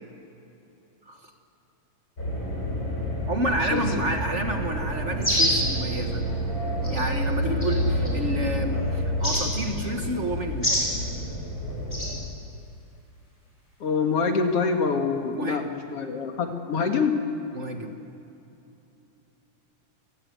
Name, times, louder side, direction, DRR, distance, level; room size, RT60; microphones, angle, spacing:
sound 1, 2.2-12.1, equal, 25° left, 5.8 m, -29 dB
voice 1, 3.3-6.2 6.9-10.8 15.3-15.6 17.5-18.0, right 1 dB, 35° right, 5 dB, 1.1 m, -30 dB
sound 2, 5.2-5.7 6.8-7.0 7.6-8.1 9.2-9.4 10.6-10.9 11.9-12.1, equal, 10° left, 6.7 m, -24 dB
voice 2, 13.8-17.1, left 5 dB, 55° left, 5 dB, 2.5 m, -25 dB
30.0 x 17.5 x 9.5 m, 2.8 s
omnidirectional pair, 3.6 m